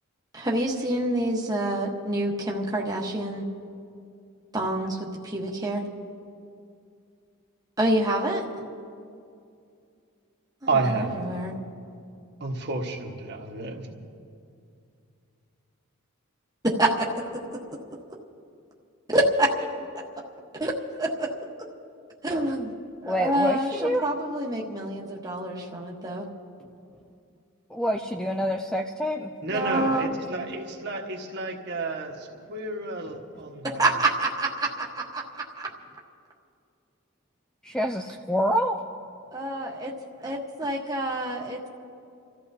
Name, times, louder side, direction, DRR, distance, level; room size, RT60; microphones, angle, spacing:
voice 1, 0.3-3.5 4.5-5.8 7.8-8.4 10.8-11.6 16.6-17.4 19.1-19.5 20.6-20.7 21.0-21.3 22.2-22.7 23.0-26.3 29.5-30.1 33.8-35.7 39.3-39.9 40.2-41.7, right 1 dB, 15° right, -2 dB, 1.2 m, -27 dB
voice 2, 10.7-11.1 12.4-13.9 29.4-33.8, right 3 dB, 50° right, 0 dB, 1.5 m, -30 dB
voice 3, 23.1-24.0 27.7-29.3 37.7-38.8, equal, 5° left, 3 dB, 0.4 m, -26 dB
30.0 x 14.0 x 2.8 m, 2.5 s
head